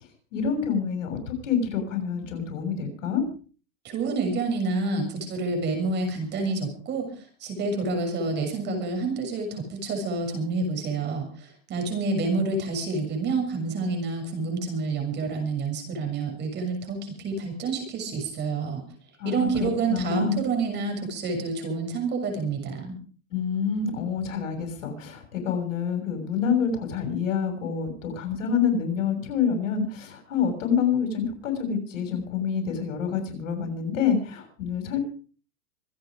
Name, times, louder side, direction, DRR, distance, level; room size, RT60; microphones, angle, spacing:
voice 1, 0.3-3.3 19.2-20.4 23.3-35.0, left 7 dB, 75° left, 5 dB, 6.9 m, -27 dB
voice 2, 3.8-7.1 7.4-18.8 19.2-22.9, right 3 dB, 25° right, 4 dB, 6.8 m, -28 dB
26.0 x 9.2 x 5.1 m, 0.40 s
supercardioid pair, 145°, 39 cm